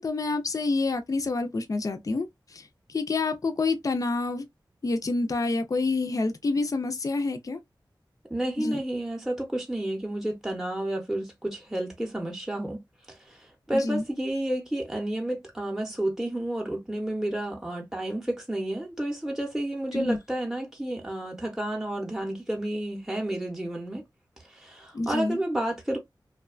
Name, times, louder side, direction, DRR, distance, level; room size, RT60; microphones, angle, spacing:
voice 1, 0.0-4.5 4.8-7.6 8.6-8.8 13.7-14.0 19.9-20.2 24.9-25.4, left 3 dB, 45° left, 0.4 m, -28 dB
voice 2, 8.3-12.8 13.1-24.0 24.4-26.0, right 1 dB, 5° right, 0.6 m, -31 dB
2.7 x 2.1 x 2.3 m
wide cardioid pair, 70°, 8 cm